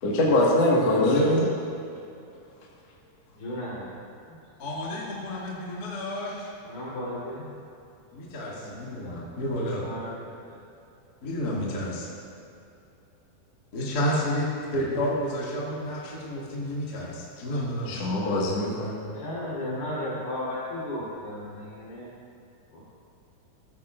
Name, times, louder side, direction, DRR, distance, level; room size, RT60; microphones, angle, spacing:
voice 1, 0.0-1.4 17.9-19.0, left 1 dB, 50° left, -5 dB, 2.1 m, -22 dB
voice 2, 1.0-1.4 4.6-6.5 8.1-9.9 11.2-12.1 13.7-18.1, equal, 35° left, -6 dB, 1.8 m, -31 dB
voice 3, 3.3-4.4 6.7-7.5 8.5-9.2 9.8-10.6 18.9-22.2 22.7-22.8, left 1 dB, 65° left, -7 dB, 5.3 m, -35 dB
15.0 x 15.0 x 2.5 m, 2.6 s
omnidirectional pair, 4.6 m